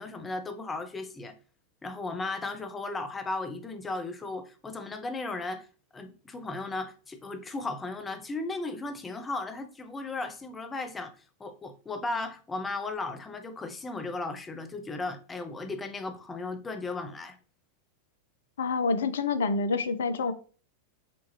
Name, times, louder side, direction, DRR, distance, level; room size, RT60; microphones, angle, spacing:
voice 1, 0.0-1.3 1.8-5.7 5.9-17.4, left 3 dB, 15° left, 0.6 m, -36 dB
voice 2, 18.6-20.3, left 4 dB, 65° left, 0.4 m, -27 dB
5.0 x 2.3 x 3.1 m
figure-of-eight pair, 90°, 0 cm